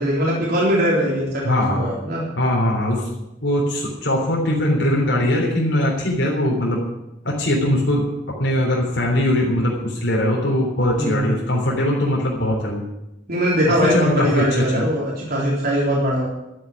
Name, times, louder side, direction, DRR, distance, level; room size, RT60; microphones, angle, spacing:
voice 1, 0.0-2.2 11.0-11.3 13.3-16.3, equal, 55° right, -5 dB, 3.7 m, -21 dB
voice 2, 1.4-1.8 2.4-3.0 3.4-6.8 7.2-8.1 8.4-12.8 13.8-14.9, left 1 dB, 70° left, -3 dB, 3.6 m, -21 dB
12.5 x 8.8 x 9.8 m, 0.92 s
head